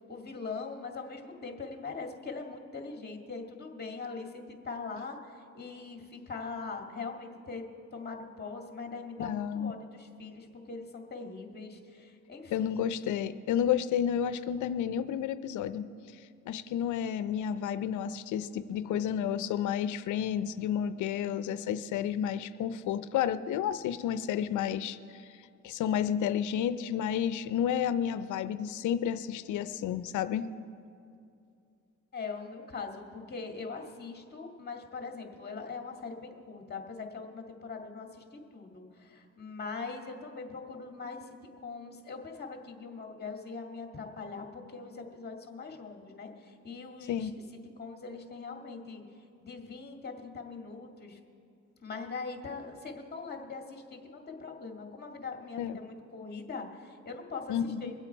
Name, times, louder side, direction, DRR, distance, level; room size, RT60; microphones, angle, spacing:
voice 1, 0.1-7.6 7.9-12.7 32.1-41.3 41.6-47.3 47.8-49.0 49.4-51.2 51.8-57.9, left 4 dB, 35° left, 3 dB, 1.9 m, -41 dB
voice 2, 9.2-9.7 12.5-15.9 16.5-25.2 25.6-30.5 47.1-47.3 55.6-55.8 57.5-57.9, left 9 dB, 85° left, 13 dB, 0.5 m, -31 dB
23.5 x 8.2 x 4.5 m, 2.5 s
cardioid pair, 85°, 29 cm